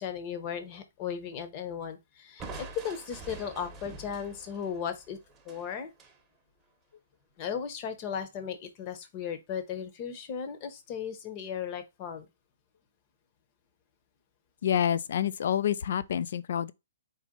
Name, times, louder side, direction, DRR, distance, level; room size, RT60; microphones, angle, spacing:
voice 1, 0.0-5.2 5.4-5.9 7.4-12.3, left 7 dB, 35° left, 0.8 m, -36 dB
Crushing, 2.4-6.2, right 3 dB, 15° right, 0.8 m, -46 dB
voice 2, 14.6-16.7, left 9 dB, 60° left, 0.3 m, -28 dB
4.0 x 2.4 x 3.7 m
hypercardioid pair, 130°, 0 cm